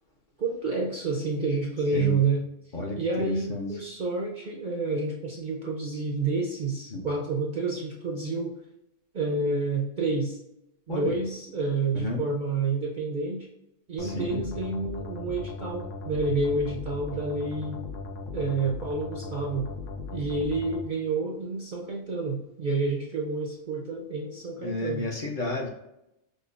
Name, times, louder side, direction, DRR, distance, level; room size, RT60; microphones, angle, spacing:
voice 1, 0.4-2.4 3.0-8.6 9.1-10.4 10.9-13.5 13.9-17.8 18.3-19.7 20.1-25.1, right 3 dB, 55° right, 0 dB, 0.5 m, -29 dB
voice 2, 2.7-3.7 6.9-7.0 10.9-11.1 11.9-12.2 14.0-14.4 24.6-25.7, left 2 dB, 50° left, -1 dB, 0.7 m, -32 dB
sound 1, 14.0-20.8, left 3 dB, 80° left, 1.0 m, -38 dB
5.0 x 2.1 x 2.4 m, 0.84 s
omnidirectional pair, 1.3 m